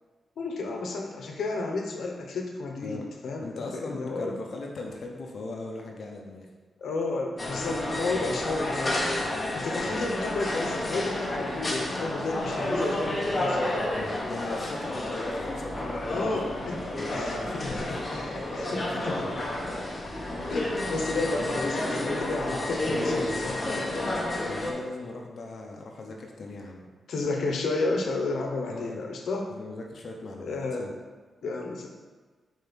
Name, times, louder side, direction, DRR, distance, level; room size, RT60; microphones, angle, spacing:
voice 1, 0.4-4.4 6.8-9.1 9.5-13.9 16.1-16.8 17.1-19.7 20.5-23.9 27.1-29.5 30.4-30.9 31.4-31.9, left 3 dB, 75° left, 2 dB, 1.1 m, -32 dB
voice 2, 3.4-6.5 9.8-10.1 13.9-16.4 16.8-18.2 23.9-26.9 28.7-29.0 29.5-30.9, left 2 dB, 55° left, 0 dB, 1.0 m, -39 dB
sound 1, 7.4-24.7, left 1 dB, 25° left, 1.3 m, -30 dB
5.5 x 4.6 x 6.2 m, 1.4 s
wide cardioid pair, 115°, 0 cm